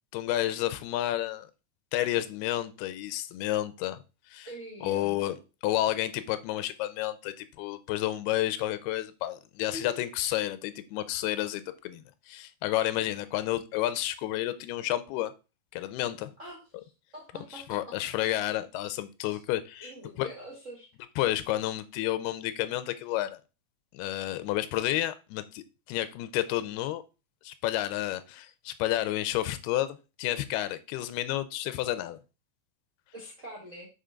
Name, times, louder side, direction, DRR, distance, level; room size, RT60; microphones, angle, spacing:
voice 1, 0.1-1.5 1.9-4.0 4.3-4.5 4.8-5.4 5.6-15.3 15.7-16.3 17.5-19.9 20.2-20.3 21.2-23.4 23.9-27.0 27.4-32.2, left 14 dB, 90° left, 2.6 m, -30 dB
voice 2, 4.4-5.2 9.7-10.0 16.4-17.8 19.3-19.4 19.8-20.9 33.1-33.9, equal, 45° right, 0.9 m, -44 dB
6.7 x 5.1 x 3.7 m
omnidirectional pair, 4.5 m